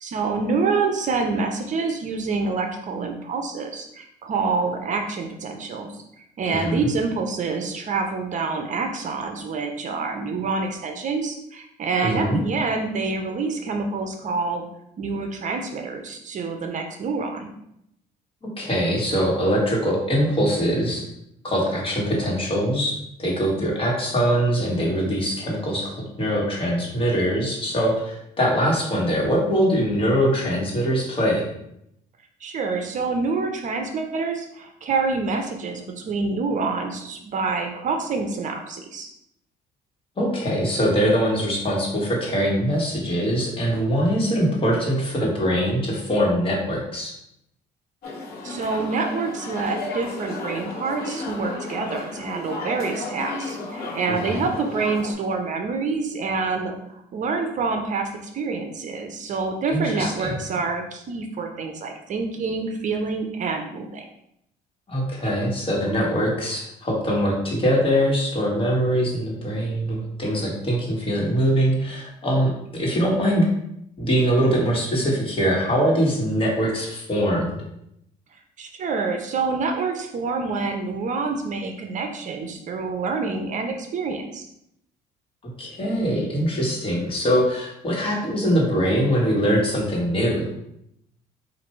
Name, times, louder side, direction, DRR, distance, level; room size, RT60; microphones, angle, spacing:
voice 1, 0.0-6.0 6.4-14.7 15.0-17.5 32.4-39.1 48.4-64.0 78.6-84.5, right 4 dB, 45° right, 4 dB, 0.6 m, -27 dB
voice 2, 6.5-6.9 12.0-12.4 18.4-21.0 21.4-22.9 23.2-31.5 40.2-47.1 54.1-54.5 59.7-60.4 64.9-73.5 74.0-77.6 85.6-90.5, equal, 30° left, -2 dB, 1.5 m, -22 dB
sound 1, 48.0-55.1, left 2 dB, 65° left, 1.3 m, -33 dB
4.3 x 2.6 x 4.3 m, 0.78 s
cardioid pair, 110°, 17 cm